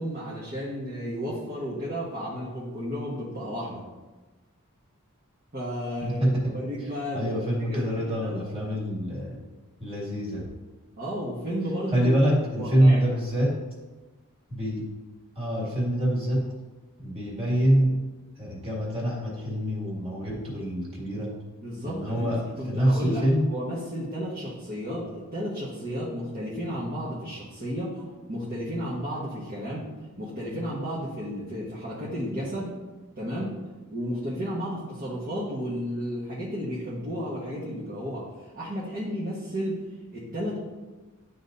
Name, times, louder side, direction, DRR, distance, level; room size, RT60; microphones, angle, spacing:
voice 1, 0.0-3.8 5.5-6.2 6.5-7.3 7.6-8.3 11.0-12.1 12.5-13.1 21.6-23.2 23.5-29.8 30.2-32.7 33.2-33.5 33.9-39.8 40.1-40.6, equal, 40° right, -8 dB, 1.4 m, -33 dB
voice 2, 6.0-6.5 7.1-9.5 9.8-10.5 11.9-13.6 14.5-14.9 15.4-16.5 17.0-18.0 18.3-21.3 21.9-23.5, equal, 25° right, -5 dB, 2.2 m, -25 dB
11.5 x 4.0 x 2.7 m, 1.2 s
head